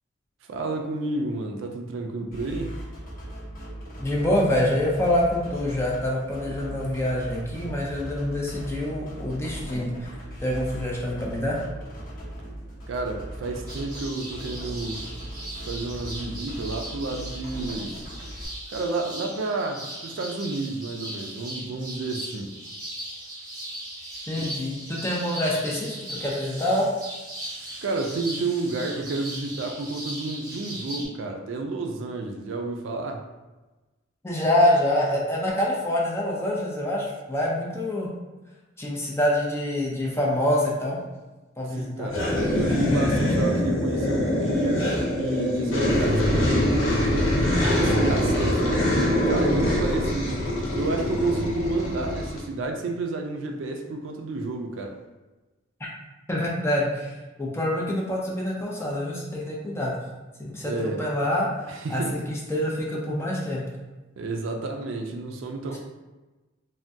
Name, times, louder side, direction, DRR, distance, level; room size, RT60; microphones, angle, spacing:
voice 1, 0.5-2.7 12.9-15.1 15.5-18.0 18.7-22.5 24.4-24.5 27.8-33.2 41.7-42.2 42.6-50.5 50.8-54.9 60.6-61.0 61.7-62.2 64.2-65.8, right 3 dB, 65° right, 3 dB, 0.3 m, -30 dB
sound 1, 2.3-18.4, right 1 dB, 45° left, 0.9 m, -38 dB
voice 2, 4.0-10.1 10.4-11.6 24.3-26.9 34.2-38.1 38.8-41.0 41.6-42.1 56.3-59.9 60.4-61.5 61.9-63.6, left 1 dB, 15° left, -4 dB, 0.5 m, -26 dB
sound 2, 13.7-31.0, right 1 dB, 20° right, 1.0 m, -38 dB
sound 3, 42.1-52.4, left 1 dB, 75° left, 0.9 m, -23 dB
3.4 x 2.1 x 2.6 m, 1.1 s
head